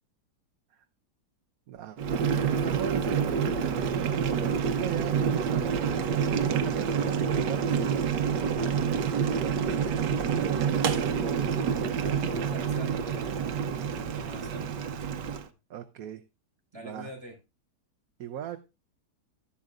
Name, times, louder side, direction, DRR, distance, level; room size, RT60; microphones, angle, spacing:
voice 1, 1.7-4.0 4.5-11.5 15.7-16.2 16.8-17.1 18.2-18.6, right 10 dB, 65° right, 7 dB, 1.1 m, -39 dB
Boiling, 2.0-15.5, right 7 dB, 85° right, 1.5 m, -27 dB
voice 2, 12.1-13.5 14.1-14.7 16.7-17.3, equal, 15° right, 0 dB, 5.2 m, -45 dB
13.5 x 11.5 x 2.5 m, 0.27 s
omnidirectional pair, 1.8 m